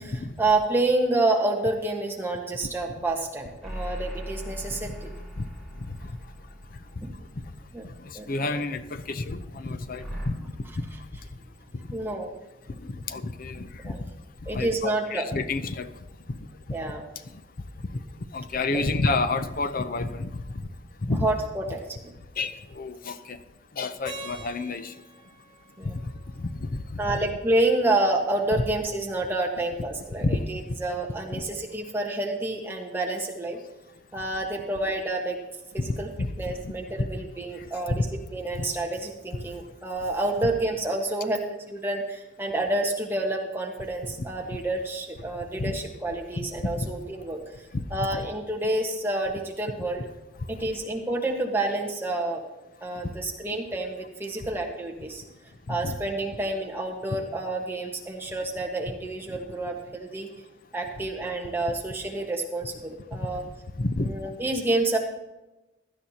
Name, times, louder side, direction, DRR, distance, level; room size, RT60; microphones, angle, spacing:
voice 1, 0.4-5.1 7.0-7.1 7.7-7.9 8.1-8.6 11.9-12.3 13.8-14.0 14.5-15.2 16.7-17.0 18.7-18.8 21.2-21.8 25.8-26.0 27.0-33.6 34.1-35.4 35.7-36.1 36.4-38.0 38.3-41.4 41.7-50.0 50.5-52.4 52.8-55.2 55.7-60.3 60.7-63.4 64.0-65.0, right 2 dB, 10° right, 0 dB, 1.3 m, -28 dB
sound 1, 3.6-8.2 10.0-10.3, equal, 5° left, 3.2 m, -39 dB
voice 2, 8.0-10.4 10.8-10.9 12.8-13.9 14.5-15.9 16.3-16.4 18.3-20.3 21.0-21.3 22.4-23.4 23.8-24.9 25.9-26.0 26.4-27.0 30.2-30.4 31.3-31.4 36.2-36.5 37.0-37.1 37.9-38.0 45.6-45.7 46.4-46.9 47.7-47.8 55.7-55.9 63.1-63.2 63.8-64.1, left 3 dB, 45° left, 10 dB, 0.6 m, -29 dB
Keyboard (musical), 24.0-27.0, right 1 dB, 20° left, 3.7 m, -45 dB
16.5 x 12.0 x 2.9 m, 1.0 s
head